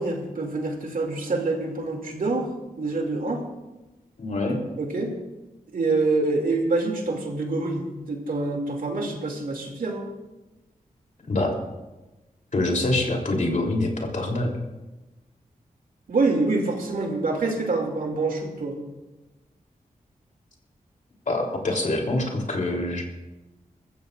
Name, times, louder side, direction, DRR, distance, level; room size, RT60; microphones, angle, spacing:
voice 1, 0.0-2.5 2.8-3.4 4.8-5.1 5.7-10.0 16.1-18.8, right 3 dB, 75° right, 2 dB, 2.5 m, -26 dB
voice 2, 4.2-4.6 11.3-11.6 12.5-14.5 21.3-23.0, left 2 dB, 60° left, 1 dB, 3.3 m, -25 dB
22.0 x 14.5 x 2.5 m, 1.1 s
cardioid pair, 65°, 15 cm